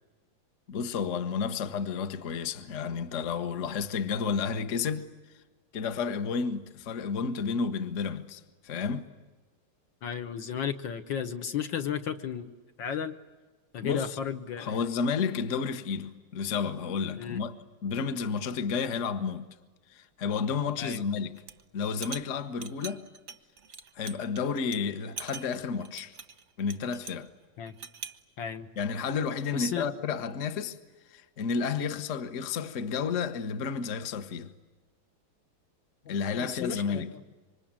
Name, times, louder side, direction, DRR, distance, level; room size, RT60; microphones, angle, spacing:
voice 1, 0.7-5.1 5.7-9.1 13.8-14.2 14.6-17.5 17.8-19.5 19.9-21.4 21.7-23.0 23.9-26.2 26.6-27.3 28.8-30.8 31.1-34.5 36.1-37.1, left 5 dB, 40° left, 1.3 m, -31 dB
voice 2, 10.0-12.5 12.8-13.2 13.7-14.8 17.2-17.4 20.8-21.0 27.6-27.7 28.4-28.7 29.5-29.9 36.1-37.2, left 8 dB, 65° left, 1.7 m, -34 dB
sound 1, 21.4-21.6 21.9-24.4 24.7-24.8 25.2-27.3 27.7-28.2, right 6 dB, 50° right, 1.0 m, -43 dB
26.5 x 24.5 x 8.8 m
omnidirectional pair, 2.3 m